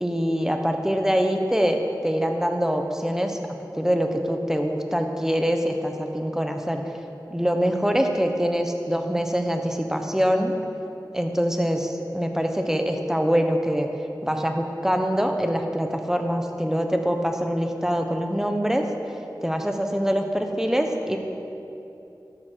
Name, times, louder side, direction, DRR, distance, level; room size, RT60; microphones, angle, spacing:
voice 1, 0.0-3.4 3.7-6.8 7.3-10.5 11.1-13.9 14.2-18.8 19.4-21.2, equal, 5° right, 4 dB, 1.1 m, -24 dB
13.0 x 12.5 x 4.6 m, 2.9 s
wide cardioid pair, 55°, 7 cm